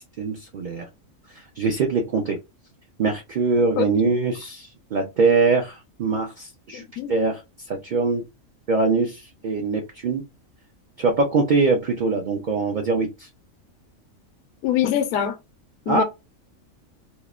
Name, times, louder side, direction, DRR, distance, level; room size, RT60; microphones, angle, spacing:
voice 1, 0.2-0.9 1.6-2.4 3.0-7.4 7.7-8.2 8.7-10.2 11.0-13.3 15.9-16.0, right 4 dB, 60° right, 0.4 m, -23 dB
voice 2, 3.8-4.1 6.7-7.1 14.6-15.4 15.9-16.0, left 10 dB, 80° left, 1.0 m, -24 dB
3.0 x 2.0 x 2.3 m
omnidirectional pair, 1.4 m